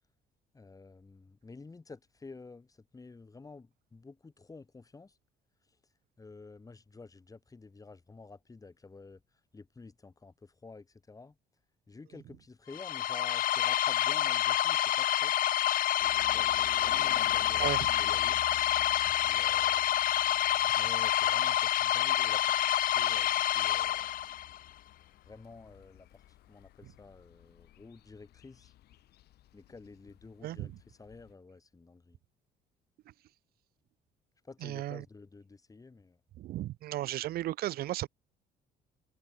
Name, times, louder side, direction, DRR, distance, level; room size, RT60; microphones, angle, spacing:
voice 1, 0.5-5.2 6.2-9.2 9.5-11.4 11.9-15.3 16.3-18.4 19.2-19.9 20.7-24.1 25.2-26.2 26.5-28.7 29.5-32.2 34.4-36.2, left 3 dB, 20° left, 4.9 m, -50 dB
sound 1, 12.7-24.6, left 12 dB, 55° left, 0.7 m, -28 dB
sound 2, 16.0-31.3, left 14 dB, 70° left, 6.0 m, -52 dB
voice 2, 34.6-35.0 36.4-38.1, right 15 dB, 65° right, 0.7 m, -34 dB
cardioid pair, 110°, 17 cm